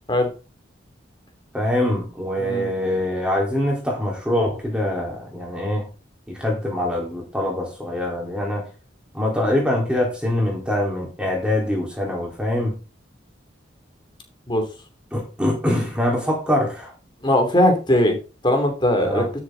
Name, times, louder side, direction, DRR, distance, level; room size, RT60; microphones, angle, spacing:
voice 1, 1.5-5.9 6.3-8.7 9.1-12.8 15.1-16.9 19.0-19.3, left 1 dB, 5° right, -2 dB, 3.7 m, -24 dB
voice 2, 2.4-2.7 14.5-14.7 17.2-18.2 18.4-19.2, left 1 dB, 25° left, 4 dB, 2.9 m, -19 dB
12.5 x 7.5 x 4.0 m, 0.32 s
head